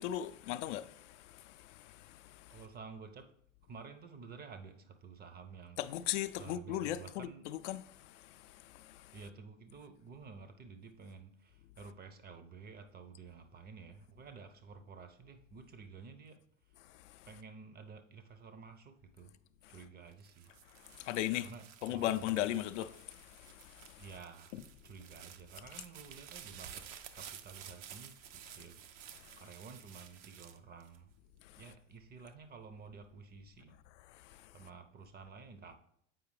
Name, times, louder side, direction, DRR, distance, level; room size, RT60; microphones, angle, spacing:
voice 1, 0.0-2.4 5.8-7.8 8.9-9.0 21.0-21.5 21.8-23.1 23.7-23.9 24.5-24.6, left 13 dB, 70° left, 0.5 m, -37 dB
voice 2, 2.5-3.3 3.7-5.8 6.4-7.5 9.1-16.4 17.3-19.3 19.7-20.5 21.4-22.6 24.0-24.5 24.8-26.9 27.1-28.8 29.1-31.1 31.6-33.8 34.5-35.7, right 5 dB, 25° right, 0.6 m, -52 dB
sound 1, 20.1-31.5 32.0-32.6, right 9 dB, 70° right, 0.7 m, -53 dB
7.6 x 4.8 x 3.2 m
hypercardioid pair, 75°, 38 cm